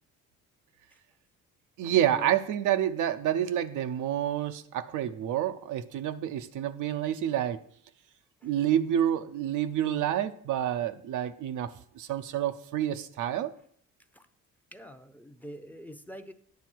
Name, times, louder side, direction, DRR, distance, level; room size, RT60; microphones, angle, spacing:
voice 1, 1.8-7.6 8.4-13.5, right 11 dB, 80° right, 0.6 m, -28 dB
voice 2, 14.7-16.3, equal, 5° left, 0.7 m, -45 dB
9.4 x 6.9 x 4.5 m
cardioid pair, 90°, 30 cm